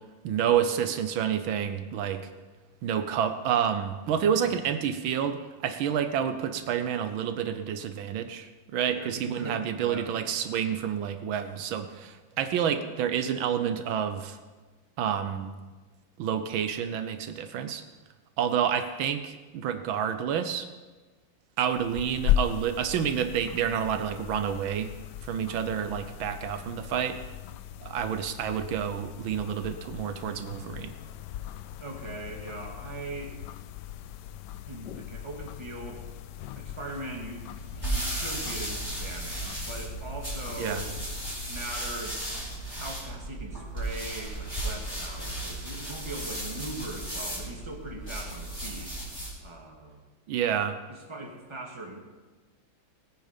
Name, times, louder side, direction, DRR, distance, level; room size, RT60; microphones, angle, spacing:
voice 1, 0.2-2.3 2.8-14.4 15.0-15.5 16.2-17.8 18.4-20.7 21.6-24.9 25.2-27.2 27.8-30.9 40.6-40.8 50.3-50.8, right 8 dB, 80° right, 9 dB, 1.6 m, -29 dB
voice 2, 8.9-10.2 10.5-10.8 31.8-33.4 34.7-36.1 36.5-41.0 41.4-42.2 42.7-48.9 49.4-50.0 50.9-52.0, right 2 dB, 15° right, -1 dB, 2.0 m, -40 dB
sound 1, 21.7-41.4, left 12 dB, 75° left, 1.1 m, -37 dB
sound 2, 37.5-49.4, right 1 dB, 10° left, 4.6 m, -35 dB
19.0 x 9.4 x 5.2 m, 1.3 s
omnidirectional pair, 2.2 m